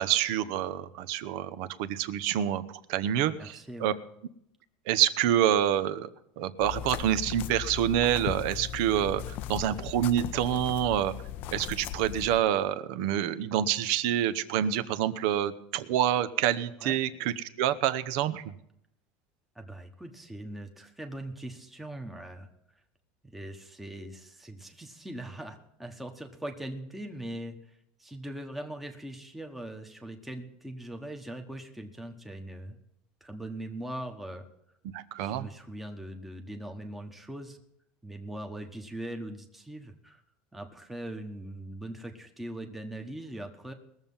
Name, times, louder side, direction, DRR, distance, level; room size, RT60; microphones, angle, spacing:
voice 1, 0.0-2.6 2.9-3.9 4.9-6.1 6.4-11.1 11.5-18.5 34.9-35.5, right 11 dB, 65° right, 14 dB, 0.9 m, -27 dB
voice 2, 3.4-3.9 16.8-17.0 19.5-22.5 23.2-32.8 33.2-34.5 35.2-37.6 38.0-40.2 40.5-43.7, right 1 dB, 5° right, 4 dB, 1.1 m, -41 dB
sound 1, 6.6-12.4, left 11 dB, 50° left, 0.5 m, -38 dB
20.5 x 7.3 x 5.5 m, 0.76 s
supercardioid pair, 150°, 4 cm